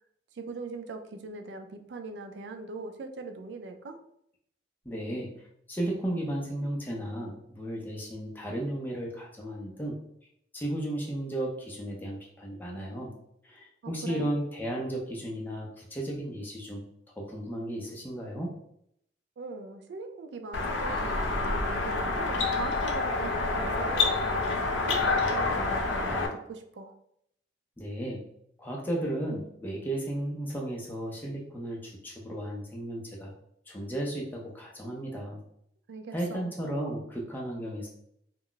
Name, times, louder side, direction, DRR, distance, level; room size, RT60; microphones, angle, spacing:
voice 1, 0.3-4.0 13.8-14.3 19.4-26.9 35.9-36.5, right 4 dB, 70° right, 7 dB, 0.3 m, -41 dB
voice 2, 4.8-5.3 5.7-10.0 10.5-13.1 13.4-16.8 17.2-18.5 27.8-28.2 28.6-33.3 33.7-35.4 36.1-37.9, right 1 dB, 10° left, -2 dB, 0.5 m, -34 dB
sound 1, 20.5-26.3, left 3 dB, 85° left, 0.5 m, -28 dB
2.2 x 2.0 x 3.8 m, 0.72 s
head